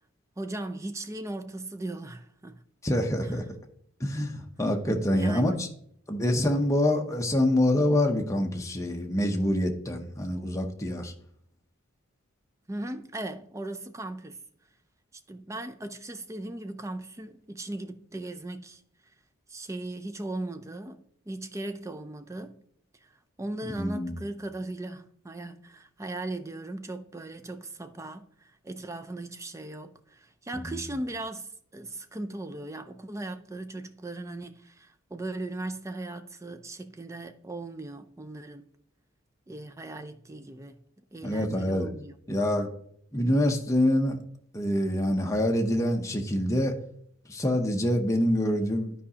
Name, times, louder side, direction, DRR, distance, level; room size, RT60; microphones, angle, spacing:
voice 1, 0.4-2.6 3.2-3.3 5.0-5.6 12.7-14.4 15.3-18.8 19.5-22.6 23.0-23.1 23.4-38.7 39.5-40.8 41.1-42.2, right 2 dB, 15° right, 0.4 m, -38 dB
voice 2, 2.8-3.4 4.0-5.7 6.1-11.1 23.8-24.2 30.5-30.8 41.2-41.9 42.3-42.7 43.1-44.2 44.5-46.8 47.3-48.9, left 1 dB, 15° left, 0.7 m, -26 dB
12.0 x 4.9 x 2.8 m
head